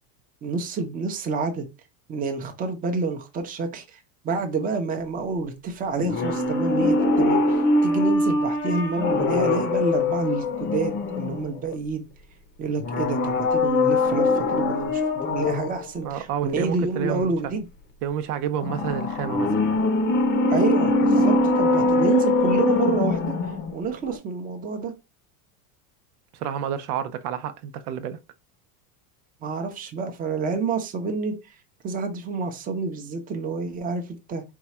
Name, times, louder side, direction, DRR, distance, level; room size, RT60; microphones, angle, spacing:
voice 1, 0.4-1.7 2.1-4.0 4.2-12.0 12.6-15.0 15.3-17.7 20.5-23.4 23.7-24.9 29.4-31.4 31.8-34.4, right 4 dB, 20° right, 0.7 m, -28 dB
sound 1, 6.0-11.7 12.8-15.8 18.6-23.8 24.1-24.2, left 2 dB, 25° left, 0.7 m, -22 dB
voice 2, 16.0-17.3 18.0-19.5 26.3-28.2, right 9 dB, 90° right, 0.8 m, -29 dB
4.6 x 2.3 x 4.2 m
supercardioid pair, 155°, 44 cm